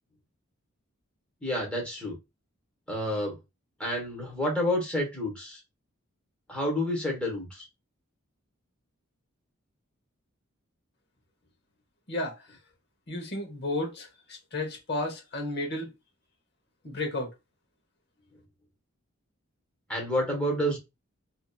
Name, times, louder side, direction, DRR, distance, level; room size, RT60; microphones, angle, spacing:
voice 1, 1.4-2.1 2.9-3.4 3.8-5.6 6.5-7.6 19.9-20.8, equal, 5° left, 1.1 m, -29 dB
voice 2, 12.1-12.5 13.1-15.9 16.8-17.3, left 2 dB, 50° left, 1.0 m, -33 dB
2.7 x 2.6 x 2.3 m
head